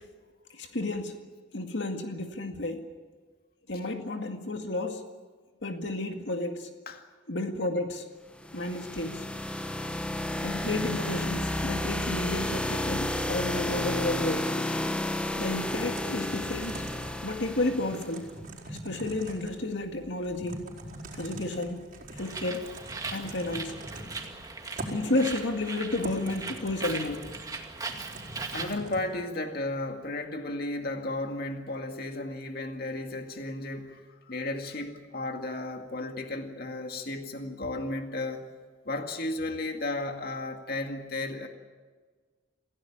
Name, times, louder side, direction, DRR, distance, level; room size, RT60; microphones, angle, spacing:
voice 1, 0.6-1.2 1.5-2.9 3.7-5.0 5.6-6.7 7.3-8.0 8.5-9.3 10.4-14.5 15.4-16.9 17.2-18.3 18.7-20.7 21.1-21.9 22.1-22.7 23.1-23.8 24.9-27.3, left 2 dB, 70° left, 4 dB, 2.1 m, -31 dB
sound 1, 8.4-18.2, left 1 dB, 5° left, 1.1 m, -31 dB
Typing, 15.7-29.1, right 1 dB, 45° right, 4.8 m, -43 dB
Bird, 22.2-28.8, right 3 dB, 20° right, 2.2 m, -39 dB
voice 2, 28.5-38.5 38.9-41.5, left 2 dB, 55° left, 4 dB, 2.1 m, -34 dB
27.0 x 16.5 x 8.6 m, 1.5 s
head